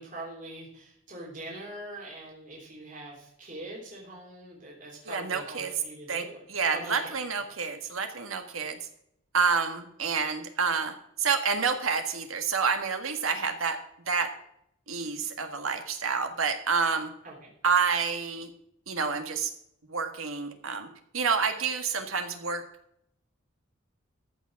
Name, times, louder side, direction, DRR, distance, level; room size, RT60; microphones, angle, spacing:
voice 1, 0.0-6.4 6.7-7.2 17.2-17.5, right 1 dB, 40° right, -3 dB, 3.4 m, -43 dB
voice 2, 5.0-5.7 6.1-8.9 9.3-13.8 14.0-14.3 14.9-17.1 17.6-18.5 18.9-19.5 19.9-20.9 21.1-22.6, right 5 dB, 90° right, 6 dB, 1.7 m, -28 dB
13.5 x 6.1 x 6.3 m, 0.74 s
head